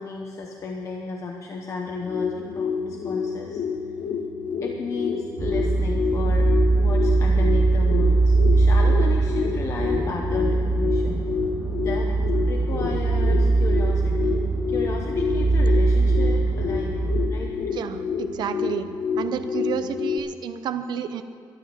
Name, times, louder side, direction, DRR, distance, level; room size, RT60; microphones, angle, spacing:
voice 1, 0.0-3.6 4.6-11.3 11.8-12.1 12.5-14.4 14.7-17.0 17.3-17.6, left 4 dB, 40° left, 1 dB, 1.0 m, -34 dB
sound 1, 1.8-20.2, left 6 dB, 60° left, 0.9 m, -29 dB
sound 2, 5.4-17.3, right 3 dB, 25° right, 1.4 m, -21 dB
voice 2, 17.7-18.9 19.2-21.2, right 8 dB, 65° right, 10 dB, 0.8 m, -30 dB
12.5 x 11.5 x 7.0 m, 2.2 s
cardioid pair, 170°, 8 cm